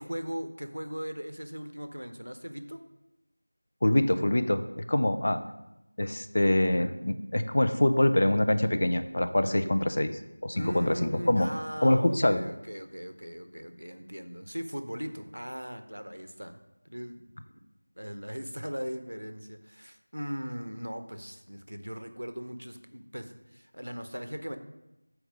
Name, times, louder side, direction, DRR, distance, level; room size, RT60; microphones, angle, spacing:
voice 1, 0.0-2.8 10.5-17.3 17.5-17.6 18.0-24.6, equal, 85° right, 9 dB, 0.7 m, -39 dB
voice 2, 3.8-4.6 4.9-5.4 6.0-11.5 11.8-12.4, left 1 dB, 45° left, 9 dB, 0.5 m, -25 dB
7.1 x 4.6 x 5.1 m, 0.93 s
figure-of-eight pair, 175°, 0 cm